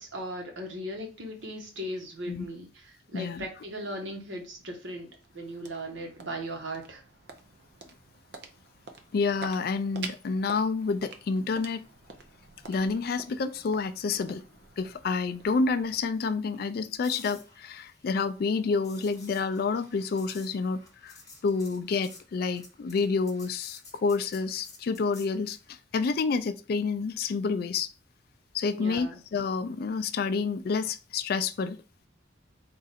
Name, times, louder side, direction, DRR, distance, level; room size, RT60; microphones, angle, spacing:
voice 1, 0.0-5.1 5.3-7.0 28.7-29.1, equal, 75° right, 1.2 m, -38 dB
voice 2, 3.1-3.4 9.1-11.8 12.7-14.4 14.8-21.2 21.4-27.9 28.5-31.8, left 4 dB, 50° left, 0.3 m, -29 dB
sound 1, 5.0-17.1, right 4 dB, 60° right, 0.6 m, -48 dB
sound 2, 17.0-25.7 29.9-30.1, left 3 dB, 20° left, 0.8 m, -52 dB
3.7 x 2.5 x 4.1 m
head